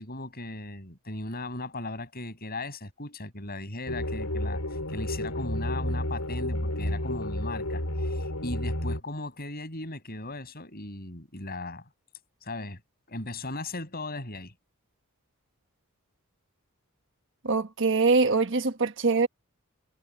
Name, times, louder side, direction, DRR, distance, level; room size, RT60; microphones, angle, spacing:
voice 1, 0.0-4.6 4.9-11.8 12.4-12.8 13.1-14.5, left 2 dB, 45° left, 7.5 m, -37 dB
sound 1, 3.9-9.0, left 1 dB, 85° left, 7.4 m, -31 dB
voice 2, 17.4-19.3, right 4 dB, 55° right, 1.4 m, -23 dB
head